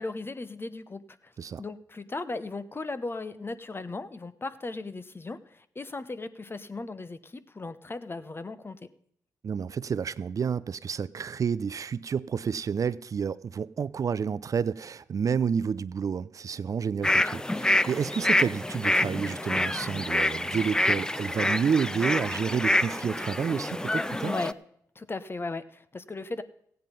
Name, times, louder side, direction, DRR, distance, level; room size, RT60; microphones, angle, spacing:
voice 1, 0.0-1.3 1.6-8.9 24.2-24.6 24.9-26.4, left 3 dB, 30° left, 0.9 m, -37 dB
voice 2, 9.4-24.3, right 6 dB, 50° right, 0.4 m, -30 dB
sound 1, 17.0-24.5, left 1 dB, 10° left, 0.4 m, -27 dB
15.0 x 9.1 x 5.3 m
supercardioid pair, 50°, 8 cm